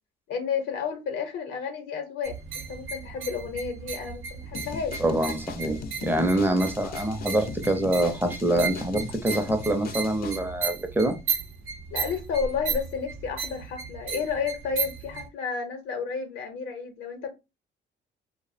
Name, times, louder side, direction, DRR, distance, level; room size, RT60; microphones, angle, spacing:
voice 1, 0.3-5.3 11.9-17.3, left 6 dB, 90° left, 0.6 m, -32 dB
sound 1, 2.2-15.3, right 5 dB, 80° right, 0.6 m, -35 dB
sound 2, 4.5-10.4, left 5 dB, 50° left, 0.4 m, -39 dB
voice 2, 5.0-11.2, right 1 dB, 10° right, 0.5 m, -25 dB
2.6 x 2.0 x 2.5 m
cardioid pair, 90°, 20 cm